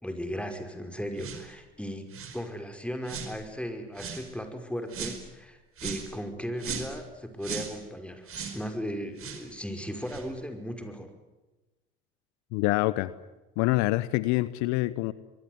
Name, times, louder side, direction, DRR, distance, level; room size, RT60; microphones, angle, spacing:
voice 1, 0.0-2.1 2.3-8.3 8.5-11.1, equal, 5° left, 6 dB, 5.4 m, -36 dB
sound 1, 1.2-1.5 2.1-2.4 3.0-3.3 4.0-4.3 4.9-5.2 5.8-6.1 6.6-7.0 7.4-7.7 8.3-8.6 9.2-9.4 10.0-10.3, right 6 dB, 50° right, 4.9 m, -37 dB
voice 2, 12.5-13.1 13.6-15.1, left 20 dB, 70° left, 17 dB, 0.9 m, -26 dB
23.5 x 22.5 x 9.7 m, 1.1 s
hypercardioid pair, 60°, 29 cm